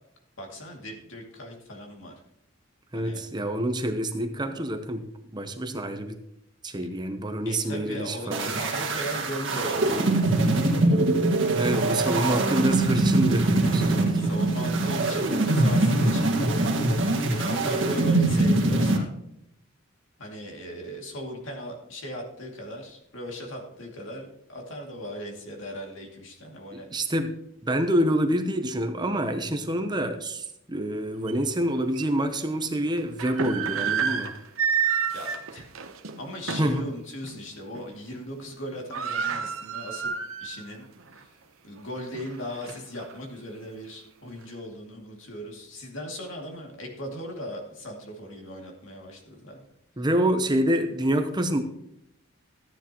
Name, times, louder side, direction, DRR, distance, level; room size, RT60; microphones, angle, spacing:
voice 1, 0.4-2.1 2.9-3.2 7.4-10.6 12.1-12.4 14.2-16.3 17.3-19.2 20.2-26.9 35.1-35.7 36.2-40.9 41.1-41.3 41.6-49.6, equal, 70° left, 1 dB, 2.4 m, -38 dB
voice 2, 2.9-5.1 5.3-6.2 6.6-8.5 11.5-14.3 26.7-27.3 27.6-34.3 36.6-36.8 50.0-51.6, right 1 dB, 20° right, 7 dB, 0.7 m, -27 dB
sound 1, 8.3-19.0, right 2 dB, 65° right, 1.8 m, -23 dB
sound 2, 31.3-31.4 31.9-32.1 33.0-36.8 37.2-37.4 37.7-38.2 38.4-38.5 38.7-40.7 41.1-41.2 41.8-43.1, right 7 dB, 85° right, 0.9 m, -30 dB
14.0 x 9.5 x 3.0 m, 0.78 s
head